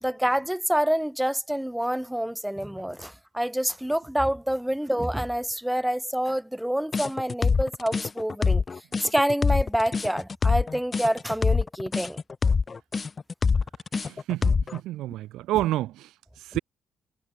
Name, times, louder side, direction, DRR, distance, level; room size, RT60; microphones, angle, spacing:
voice 1, 0.0-8.6 9.0-12.2, equal, 5° right, 3.4 m, -27 dB
sound 1, 6.9-14.8, left 5 dB, 35° left, 2.0 m, -24 dB
voice 2, 14.0-16.1 16.4-16.6, right 15 dB, 90° right, 4.0 m, -29 dB
cardioid pair, 90°, 0 cm